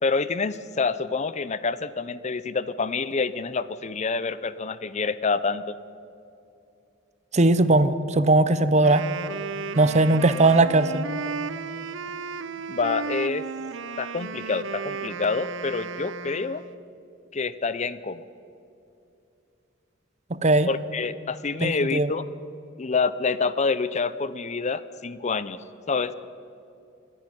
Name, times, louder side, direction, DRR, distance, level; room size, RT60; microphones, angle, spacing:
voice 1, 0.0-5.7 12.7-13.5 14.0-16.6 17.3-18.2 20.7-22.3 22.8-25.6 25.9-26.1, left 4 dB, 35° left, 15 dB, 0.6 m, -27 dB
voice 2, 7.3-9.0 9.8-11.0 20.3-20.7 21.6-22.1, right 2 dB, 35° right, 14 dB, 0.8 m, -19 dB
Wind instrument woodwind instrument, 8.7-16.8, right 5 dB, 65° right, 0.7 m, -34 dB
27.5 x 10.5 x 10.0 m, 2.6 s
head